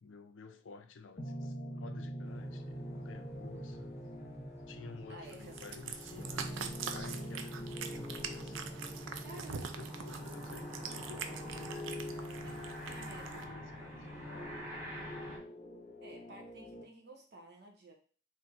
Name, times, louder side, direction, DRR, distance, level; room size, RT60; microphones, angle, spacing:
voice 1, 0.0-4.0 4.7-8.7 9.3-12.1 13.1-14.6, left 4 dB, 70° left, 8 dB, 0.5 m, -52 dB
sound 1, 1.2-16.8, equal, 35° left, 0.7 m, -45 dB
sound 2, 2.2-15.4, equal, 15° right, 1.1 m, -48 dB
voice 2, 5.1-5.6 9.2-9.9 12.4-13.4 16.0-17.9, right 2 dB, 55° right, 2 dB, 0.9 m, -53 dB
Cat, 5.3-13.4, right 6 dB, 75° right, 0.4 m, -44 dB
3.4 x 2.6 x 4.2 m, 0.42 s
head